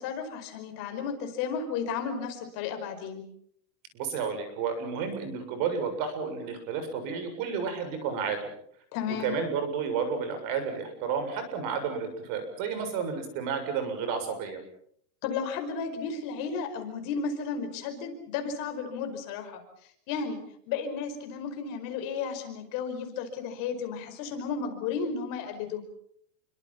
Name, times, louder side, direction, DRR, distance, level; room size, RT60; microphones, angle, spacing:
voice 1, 0.0-3.2 8.9-9.3 15.2-25.8, left 6 dB, 40° left, 6 dB, 5.2 m, -33 dB
voice 2, 3.9-8.4 9.1-14.6, right 6 dB, 40° right, 8 dB, 7.3 m, -31 dB
29.0 x 24.5 x 5.8 m, 0.66 s
supercardioid pair, 160°, 49 cm